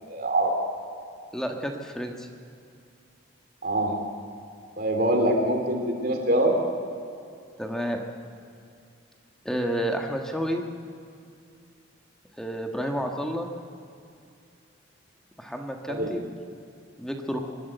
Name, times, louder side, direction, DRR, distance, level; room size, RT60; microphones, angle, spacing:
voice 1, 0.1-0.6 3.6-4.0 4.8-6.6 15.9-16.1, right 1 dB, 50° right, 2 dB, 3.0 m, -24 dB
voice 2, 1.3-2.3 7.6-8.0 9.4-10.7 12.4-13.5 15.4-16.2 17.0-17.4, equal, 5° left, 2 dB, 1.4 m, -30 dB
24.5 x 12.0 x 9.2 m, 2.4 s
head